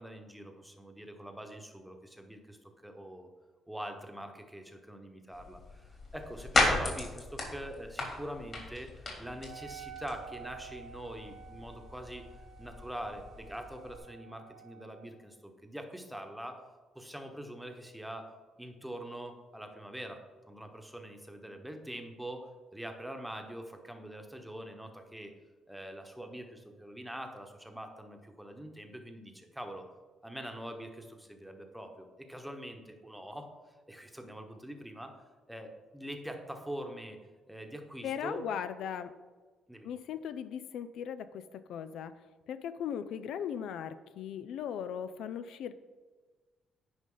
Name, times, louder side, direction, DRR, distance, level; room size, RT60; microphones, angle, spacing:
voice 1, 0.0-3.3 3.7-12.3 12.6-16.6 16.9-18.3 18.6-20.2 20.5-25.3 25.7-29.8 30.2-33.5 33.9-35.1 35.5-37.2 37.5-38.4 39.7-39.9, right 1 dB, 5° right, 4 dB, 1.1 m, -44 dB
sound 1, 5.3-14.0, left 2 dB, 45° left, 2.6 m, -36 dB
Wind instrument woodwind instrument, 9.4-15.1, right 9 dB, 75° right, 1.0 m, -51 dB
voice 2, 38.0-39.1 39.8-42.1 42.5-45.7, left 8 dB, 75° left, 12 dB, 0.4 m, -38 dB
9.5 x 5.2 x 3.9 m, 1.3 s
cardioid pair, 85°, 0 cm